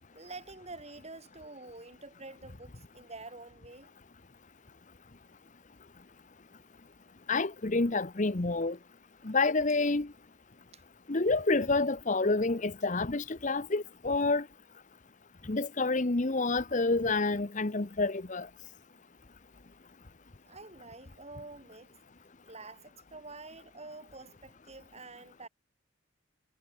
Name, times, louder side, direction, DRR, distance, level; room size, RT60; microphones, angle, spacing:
voice 1, 0.1-3.9 10.7-10.8 20.5-21.9 22.5-25.5, right 3 dB, 30° right, 3.3 m, -48 dB
voice 2, 7.3-8.8 9.2-10.1 11.1-14.4 15.5-18.5, left 3 dB, 35° left, 0.9 m, -28 dB
head